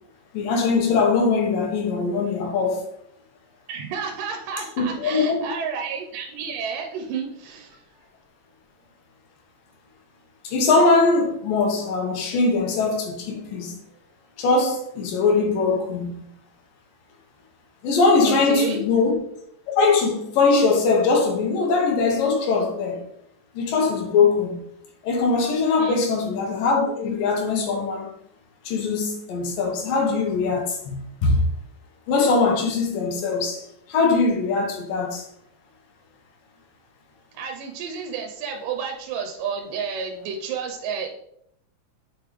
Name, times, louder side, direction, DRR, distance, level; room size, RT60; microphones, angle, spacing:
voice 1, 0.3-2.8 4.8-5.5 10.4-13.7 14.4-16.3 17.8-19.2 19.8-23.0 23.6-24.6 25.0-28.1 28.7-31.4 32.1-35.2, left 4 dB, 90° left, 3.0 m, -21 dB
voice 2, 3.7-7.8 18.2-18.8 25.8-26.1 37.3-41.1, right 6 dB, 90° right, 2.3 m, -31 dB
6.8 x 5.3 x 3.2 m
omnidirectional pair, 3.8 m